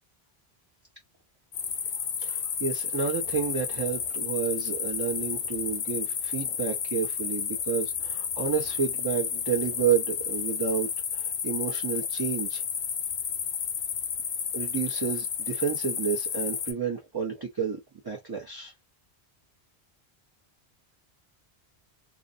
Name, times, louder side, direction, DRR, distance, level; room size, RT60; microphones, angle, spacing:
sound 1, 1.5-16.7, left 7 dB, 70° left, 0.8 m, -32 dB
voice 1, 2.2-12.6 14.5-18.7, right 7 dB, 30° right, 0.5 m, -30 dB
2.4 x 2.0 x 2.6 m
omnidirectional pair, 1.1 m